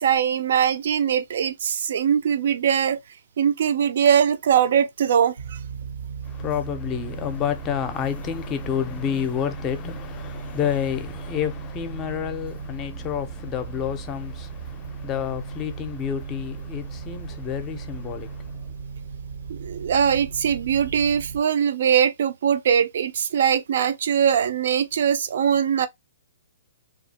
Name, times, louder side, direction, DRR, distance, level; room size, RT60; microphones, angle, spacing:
voice 1, 0.0-3.0 3.4-5.6 19.5-25.9, right 8 dB, 65° right, 0.4 m, -21 dB
sound 1, 5.4-21.4, right 5 dB, 85° right, 0.8 m, -36 dB
voice 2, 6.2-18.6, left 9 dB, 25° left, 0.5 m, -29 dB
2.7 x 2.4 x 2.7 m
hypercardioid pair, 135°, 0 cm